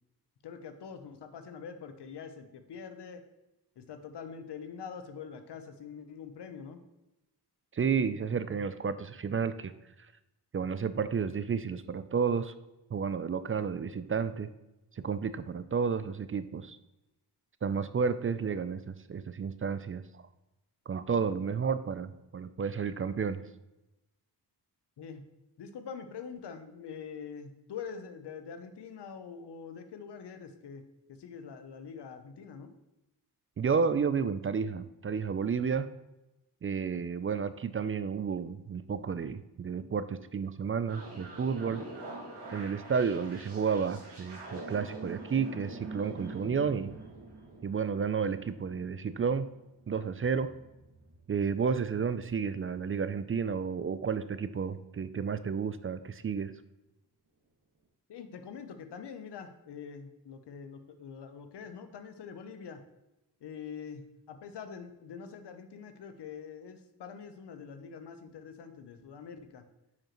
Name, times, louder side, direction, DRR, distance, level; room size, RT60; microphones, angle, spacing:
voice 1, 0.4-3.2 3.8-6.8 25.0-25.2 25.6-32.7 58.1-62.8 63.4-69.6, left 6 dB, 80° left, 8 dB, 0.9 m, -44 dB
voice 2, 7.7-9.7 10.0-10.1 10.5-12.5 12.9-14.5 14.9-16.8 17.6-20.2 20.9-23.5 33.6-35.9 36.6-41.8 42.5-46.9 47.6-49.5 49.9-50.5 51.3-56.5, right 6 dB, 35° right, 13 dB, 0.4 m, -31 dB
sound 1, 40.9-53.9, right 2 dB, 80° right, 2.0 m, -46 dB
9.5 x 5.0 x 3.0 m, 0.96 s
cardioid pair, 70°, 40 cm